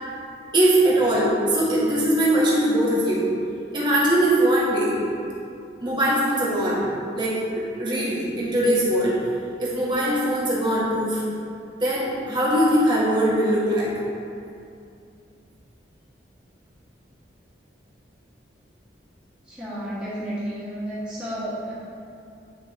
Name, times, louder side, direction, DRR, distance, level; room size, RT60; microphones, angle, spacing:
voice 1, 0.5-3.3 3.7-5.0 5.8-6.8 7.1-9.2 9.6-11.2 11.8-13.9, right 1 dB, 25° right, -7 dB, 1.6 m, -21 dB
voice 2, 19.5-21.7, equal, 5° right, -12 dB, 1.9 m, -32 dB
10.0 x 5.4 x 3.3 m, 2.5 s
head